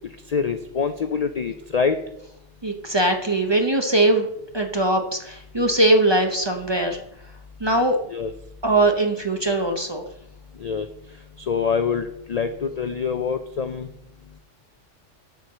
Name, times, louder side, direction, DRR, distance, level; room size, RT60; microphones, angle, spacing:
voice 1, 0.3-2.0 8.1-8.3 10.6-10.9 11.5-13.9, left 6 dB, 60° left, 8 dB, 0.4 m, -25 dB
voice 2, 2.6-4.3 4.5-7.0 7.6-8.0 8.6-10.0, right 1 dB, 25° right, 4 dB, 0.6 m, -21 dB
8.0 x 4.6 x 6.7 m, 0.78 s
omnidirectional pair, 1.3 m